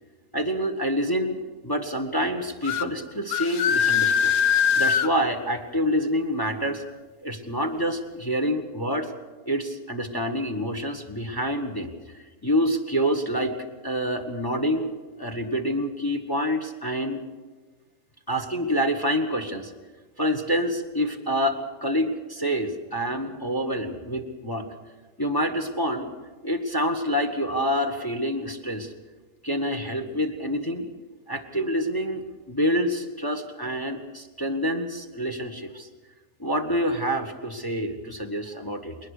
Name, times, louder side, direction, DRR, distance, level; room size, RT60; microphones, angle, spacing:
voice 1, 0.3-1.4 1.6-4.3 4.7-6.8 7.2-9.1 9.4-13.6 13.8-14.9 15.2-17.2 18.3-19.7 20.2-24.7 25.2-26.1 26.4-28.9 29.4-30.9 31.3-35.9 36.4-39.0, equal, 15° left, 7 dB, 1.3 m, -27 dB
sound 1, 2.6-2.9 3.3-5.1, left 7 dB, 85° left, 1.3 m, -22 dB
21.0 x 19.5 x 6.6 m, 1.3 s
omnidirectional pair, 1.5 m